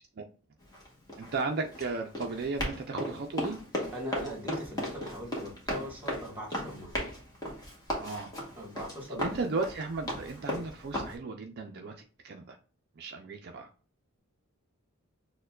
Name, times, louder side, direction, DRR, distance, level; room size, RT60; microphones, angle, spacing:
Run, 0.6-11.1, equal, 20° left, 1.1 m, -37 dB
voice 1, 1.2-3.6 8.0-8.3 9.1-12.6 13.0-13.7, right 3 dB, 50° right, 3 dB, 0.4 m, -35 dB
voice 2, 3.9-6.9 8.5-9.4, equal, 10° right, -1 dB, 1.4 m, -40 dB
6.5 x 2.2 x 2.3 m, 0.39 s
head